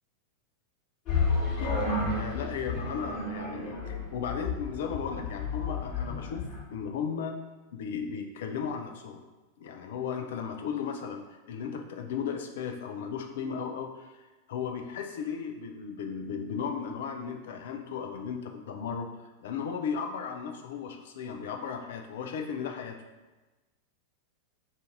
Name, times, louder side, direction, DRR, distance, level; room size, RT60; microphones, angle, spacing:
sound 1, 1.1-6.6, left 3 dB, 40° left, 1.2 m, -31 dB
voice 1, 1.3-7.4 7.7-9.2 9.6-19.1 19.4-23.0, left 6 dB, 55° left, 4 dB, 0.4 m, -36 dB
2.6 x 2.5 x 3.4 m, 1.2 s
figure-of-eight pair, 90°, 0 cm